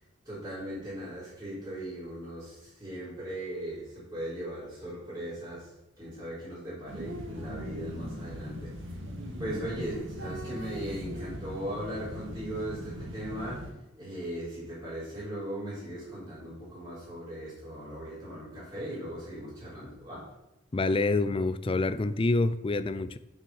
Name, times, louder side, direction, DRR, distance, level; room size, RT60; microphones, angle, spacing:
voice 1, 0.3-9.0 9.4-13.7 14.0-20.3, right 1 dB, 20° right, 3.8 m, -38 dB
sound 1, 6.9-13.7, equal, 80° right, 1.7 m, -39 dB
voice 2, 20.7-23.2, left 3 dB, 30° left, 0.4 m, -27 dB
6.8 x 6.6 x 7.2 m
head